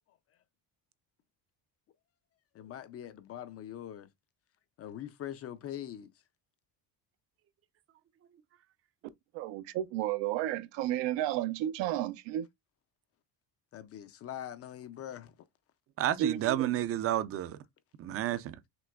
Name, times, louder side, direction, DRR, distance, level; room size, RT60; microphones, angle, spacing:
voice 1, 2.5-4.1 4.8-6.1 13.7-15.4 18.3-18.4, left 11 dB, 35° left, 0.4 m, -43 dB
voice 2, 9.3-12.5 16.2-16.7, right 12 dB, 85° right, 0.6 m, -32 dB
voice 3, 16.0-17.6 18.0-18.6, right 12 dB, 35° right, 0.4 m, -30 dB
5.9 x 2.9 x 2.3 m
cardioid pair, 150°, 42 cm